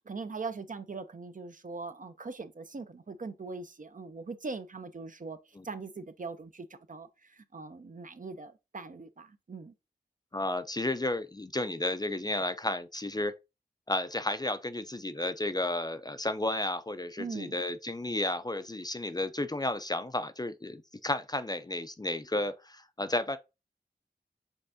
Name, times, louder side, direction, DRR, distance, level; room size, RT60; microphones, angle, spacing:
voice 1, 0.1-5.4 5.6-9.7 17.2-17.6, right 4 dB, 50° right, 0.5 m, -41 dB
voice 2, 10.3-13.3 13.9-23.4, left 1 dB, 25° left, 0.4 m, -32 dB
5.4 x 3.4 x 2.6 m
wide cardioid pair, 55°, 17 cm